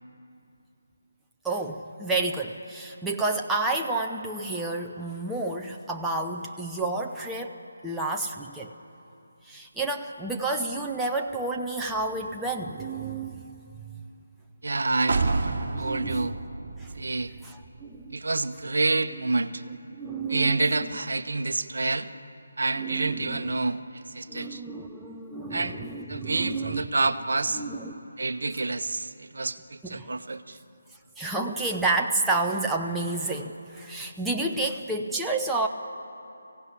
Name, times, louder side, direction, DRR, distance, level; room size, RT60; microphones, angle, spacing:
voice 1, 1.4-8.7 9.5-13.5 15.7-16.3 16.8-16.9 17.4-18.2 19.6-20.9 22.7-23.6 24.3-26.9 27.5-28.0 29.8-30.1 31.2-35.7, right 2 dB, 5° right, -1 dB, 0.8 m, -30 dB
voice 2, 14.6-16.4 16.9-17.3 18.1-19.6 20.3-22.1 22.6-24.6 25.5-25.8 26.1-27.6 28.2-30.6, right 3 dB, 60° right, 10 dB, 1.0 m, -28 dB
sound 1, 15.1-18.8 19.2-19.3, right 3 dB, 40° right, 1.8 m, -31 dB
23.0 x 15.5 x 9.8 m, 2.7 s
figure-of-eight pair, 150°, 0 cm